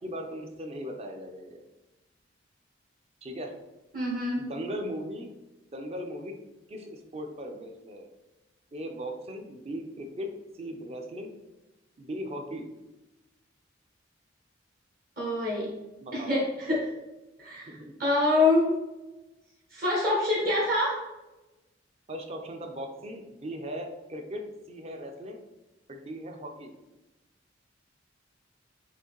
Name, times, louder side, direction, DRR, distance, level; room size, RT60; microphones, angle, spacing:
voice 1, 0.0-1.6 3.2-3.6 4.4-5.3 5.7-6.3 6.7-8.1 8.7-10.3 10.5-11.3 12.0-12.7 16.0-16.4 17.7-17.9 22.1-25.4 25.9-26.7, equal, 30° right, 4 dB, 0.5 m, -38 dB
voice 2, 3.9-4.5 15.2-15.7 16.1-16.9 17.4-18.8 19.7-21.0, left 2 dB, 45° right, -6 dB, 1.1 m, -26 dB
5.8 x 2.6 x 3.0 m, 1.1 s
head